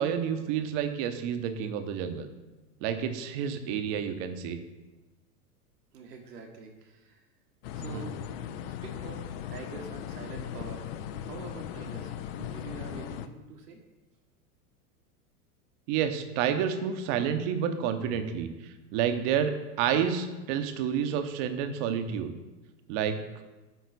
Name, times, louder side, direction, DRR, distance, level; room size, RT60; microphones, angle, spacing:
voice 1, 0.0-2.3 2.8-4.6 7.9-8.0 15.9-18.5 18.9-22.4 22.9-23.2, right 8 dB, 50° right, 9 dB, 0.9 m, -29 dB
voice 2, 5.9-7.2 7.7-12.1 12.5-13.8, right 4 dB, 80° right, 2 dB, 1.4 m, -45 dB
sound 1, 7.6-13.3, left 9 dB, 40° left, 0.4 m, -38 dB
9.3 x 4.0 x 4.1 m, 1.1 s
hypercardioid pair, 100°, 47 cm